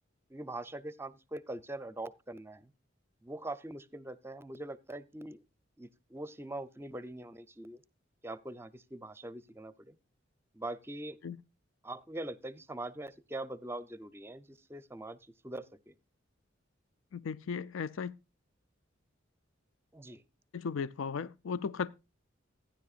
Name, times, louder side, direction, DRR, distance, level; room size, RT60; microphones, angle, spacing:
voice 1, 0.3-2.7 3.2-5.4 5.8-7.8 8.2-10.0 10.5-11.2 11.8-15.9 19.9-20.2, right 1 dB, 15° right, 0.6 m, -43 dB
voice 2, 17.1-18.2 20.5-21.9, left 6 dB, 90° left, 0.5 m, -36 dB
15.0 x 10.0 x 2.4 m
head